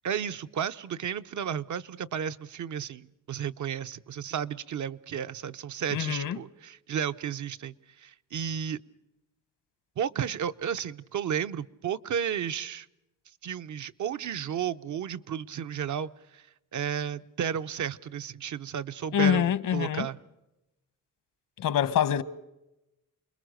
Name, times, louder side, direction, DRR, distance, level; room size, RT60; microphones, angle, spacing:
voice 1, 0.0-8.8 10.0-12.9 13.4-16.4 16.7-20.2, right 8 dB, 65° right, 0.8 m, -33 dB
voice 2, 5.9-6.4 19.1-20.1 21.6-22.2, left 10 dB, 80° left, 1.1 m, -25 dB
29.0 x 21.5 x 6.5 m
wide cardioid pair, 145°, 32 cm